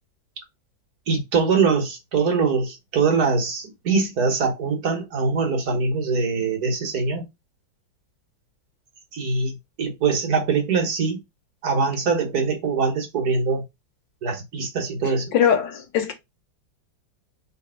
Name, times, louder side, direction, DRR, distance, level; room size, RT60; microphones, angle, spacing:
voice 1, 1.1-7.2 9.1-11.2 11.6-13.6 14.2-15.3, right 4 dB, 55° right, 1.7 m, -23 dB
voice 2, 15.3-16.1, left 8 dB, 80° left, 1.5 m, -20 dB
3.4 x 3.3 x 4.3 m
omnidirectional pair, 2.0 m